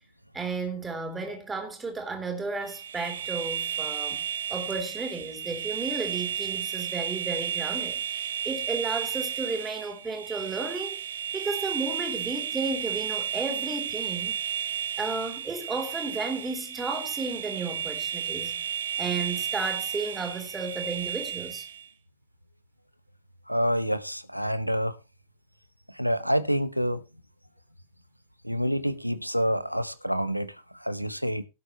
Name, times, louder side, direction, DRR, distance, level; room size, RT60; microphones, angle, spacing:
voice 1, 0.3-4.2 4.5-11.0 11.3-18.6 19.0-21.7, right 3 dB, 15° right, 3.7 m, -33 dB
sound 1, 2.6-21.9, right 9 dB, 65° right, 1.1 m, -33 dB
voice 2, 23.5-25.0 26.0-27.0 28.4-30.6 30.8-31.4, equal, 90° right, 0.8 m, -27 dB
17.0 x 8.1 x 3.1 m
figure-of-eight pair, 90°, 0 cm